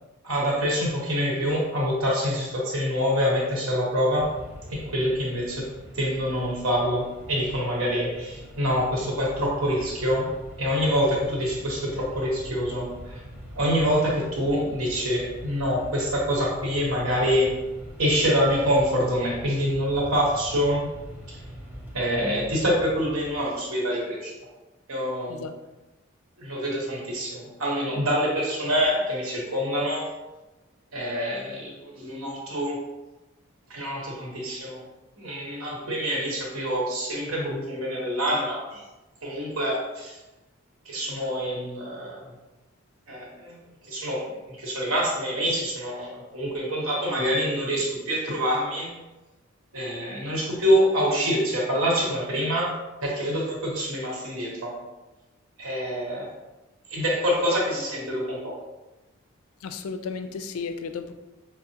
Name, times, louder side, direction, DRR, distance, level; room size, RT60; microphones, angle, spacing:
voice 1, 0.2-4.3 4.7-10.3 10.6-13.2 13.5-17.6 18.0-20.9 21.3-21.4 21.9-24.3 24.9-25.4 26.4-30.1 30.9-32.8 33.7-34.8 35.2-38.8 39.2-40.2 40.8-42.2 43.1-43.6 43.9-48.9 49.7-52.7 53.0-54.8 55.6-56.3 56.9-58.6, equal, 70° right, -4 dB, 1.0 m, -26 dB
Mechanisms, 4.1-23.6, equal, 10° right, 0.6 m, -43 dB
voice 2, 59.6-61.1, left 5 dB, 80° left, 8 dB, 0.3 m, -34 dB
5.3 x 2.0 x 2.8 m, 1.1 s
head